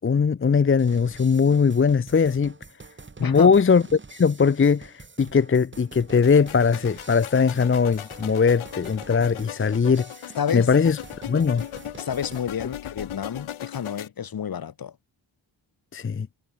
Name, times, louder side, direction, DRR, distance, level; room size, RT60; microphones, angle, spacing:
voice 1, 0.0-2.5 3.2-3.8 4.1-10.1 10.5-11.0 11.3-11.6 15.9-16.3, left 5 dB, 25° left, 0.8 m, -20 dB
sound 1, 0.8-12.5, right 4 dB, 25° right, 3.5 m, -46 dB
voice 2, 3.2-3.5 10.4-10.7 12.0-14.9, left 8 dB, 45° left, 1.6 m, -29 dB
sound 2, 6.1-14.1, left 11 dB, 85° left, 2.9 m, -38 dB
wide cardioid pair, 145°, 47 cm